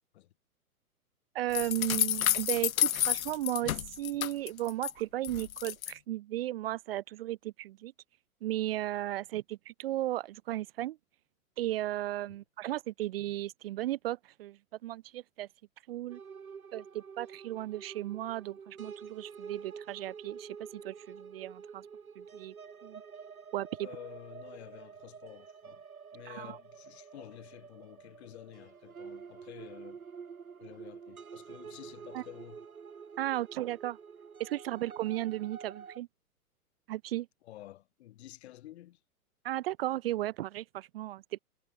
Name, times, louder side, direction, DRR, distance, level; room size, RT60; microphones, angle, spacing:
voice 1, 1.3-7.9 8.4-11.0 11.6-15.5 15.9-16.2 16.7-21.9 22.1-22.5 22.8-23.0 23.5-23.9 26.2-26.6 32.1-32.2 33.2-34.0 34.4-36.1 36.9-37.3 39.4-41.4, right 14 dB, 40° right, 1.2 m, -35 dB
sound 1, 1.5-4.9 5.2-5.9, left 11 dB, 65° left, 0.6 m, -30 dB
sound 2, 16.1-36.0, right 6 dB, 65° right, 4.5 m, -48 dB
voice 2, 23.8-25.8 26.1-30.0 30.6-32.6 37.4-39.0, left 14 dB, 45° left, 4.4 m, -50 dB
figure-of-eight pair, 110°, 45 cm